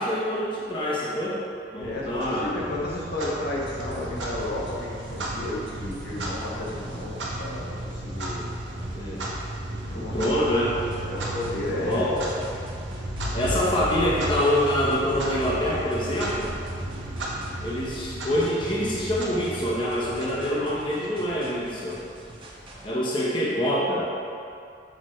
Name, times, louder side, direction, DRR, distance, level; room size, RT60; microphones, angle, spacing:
voice 1, 0.0-1.4 1.7-2.5 8.9-9.3 9.9-10.8 11.7-12.2 13.3-16.5 17.6-22.0 22.8-24.0, equal, 30° left, -6 dB, 1.0 m, -25 dB
voice 2, 1.8-8.5 9.9-10.4 11.1-12.4, left 1 dB, 60° left, -5 dB, 1.2 m, -32 dB
sound 1, 1.8-18.4, right 3 dB, 45° right, 0.4 m, -44 dB
Clock, 2.2-20.9, right 1 dB, 80° right, 1.1 m, -34 dB
sound 2, 3.5-22.9, right 1 dB, 30° right, 1.0 m, -46 dB
6.4 x 5.9 x 3.1 m, 2.5 s
head